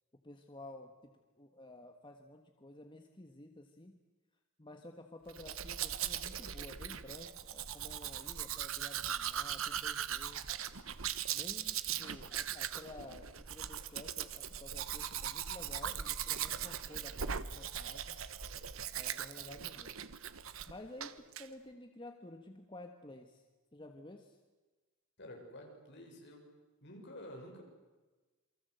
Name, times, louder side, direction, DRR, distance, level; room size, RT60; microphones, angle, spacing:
voice 1, 0.2-1.1 1.4-4.0 4.6-10.5 11.3-18.2 19.0-20.0 20.7-23.4 23.7-24.4, left 1 dB, 25° left, 5 dB, 1.5 m, -52 dB
Domestic sounds home sounds, 5.3-20.7 21.0-21.5, right 9 dB, 80° right, 1.2 m, -40 dB
voice 2, 25.2-26.5 26.8-27.6, left 1 dB, 55° left, 2 dB, 6.9 m, -50 dB
28.0 x 23.5 x 8.2 m, 1.2 s
head